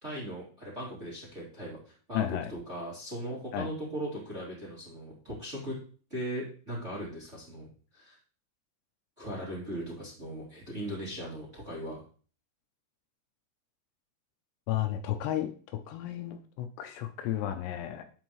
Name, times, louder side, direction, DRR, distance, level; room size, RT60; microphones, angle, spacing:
voice 1, 0.0-5.8 6.1-7.7 7.9-8.2 9.2-12.0, equal, 25° right, -6 dB, 1.9 m, -38 dB
voice 2, 2.1-2.5 3.5-3.7 14.7-15.5 15.9-18.0, left 12 dB, 80° left, 7 dB, 2.7 m, -33 dB
13.0 x 4.7 x 3.1 m, 0.42 s
omnidirectional pair, 5.2 m